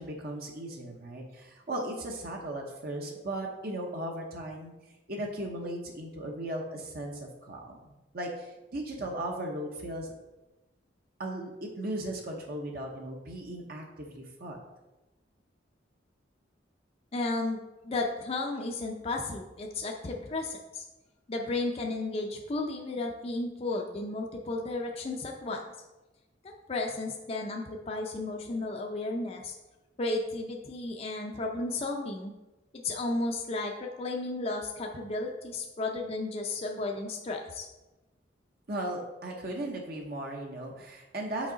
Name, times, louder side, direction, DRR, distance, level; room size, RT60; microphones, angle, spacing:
voice 1, 0.0-4.7 5.1-10.1 11.2-14.6 38.7-41.5, right 1 dB, 55° right, 0 dB, 0.9 m, -37 dB
voice 2, 17.1-17.6 17.8-20.8 21.3-25.6 26.7-29.5 30.0-32.3 32.7-37.7, left 2 dB, 35° left, 1 dB, 0.5 m, -33 dB
6.2 x 4.6 x 3.9 m, 1.0 s
head